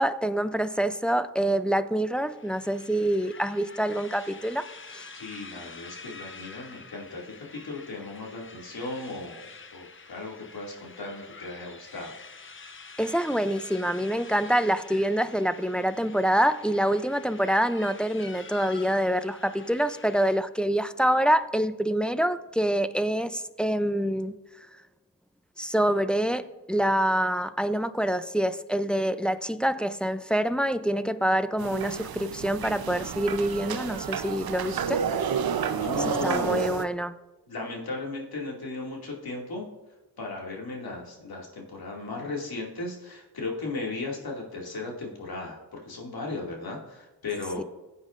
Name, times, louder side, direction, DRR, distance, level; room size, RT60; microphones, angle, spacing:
voice 1, 0.0-4.7 4.9-5.1 13.0-24.3 25.6-35.0 36.2-37.1 47.6-47.7, right 1 dB, ahead, 11 dB, 0.5 m, -26 dB
sound 1, 2.1-20.4, left 4 dB, 30° left, 0.8 m, -47 dB
voice 2, 5.1-12.2 35.7-36.6 37.5-39.7 40.2-47.6, left 3 dB, 65° left, -1 dB, 2.5 m, -36 dB
sound 2, 31.6-36.8, right 7 dB, 65° right, 0.8 m, -30 dB
15.0 x 8.4 x 2.6 m, 1.1 s
cardioid pair, 55°, 40 cm